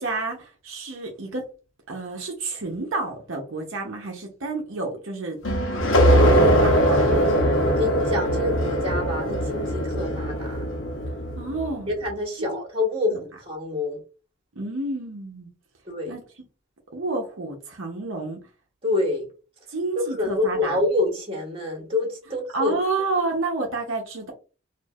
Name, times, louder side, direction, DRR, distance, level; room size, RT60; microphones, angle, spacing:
voice 1, 0.0-1.5 1.9-5.4 6.3-7.0 11.4-11.9 12.4-12.5 13.1-13.2 14.5-15.5 16.1-16.2 16.9-18.4 19.7-20.8 22.5-24.3, right 3 dB, 70° right, 1 dB, 0.8 m, -30 dB
sound 1, 5.4-11.8, equal, 65° left, 0.9 m, -21 dB
voice 2, 7.6-10.6 11.9-14.0 15.9-16.1 18.8-19.3 20.0-22.7, left 2 dB, 25° right, 1 dB, 1.4 m, -27 dB
4.4 x 2.6 x 2.4 m, 0.34 s
head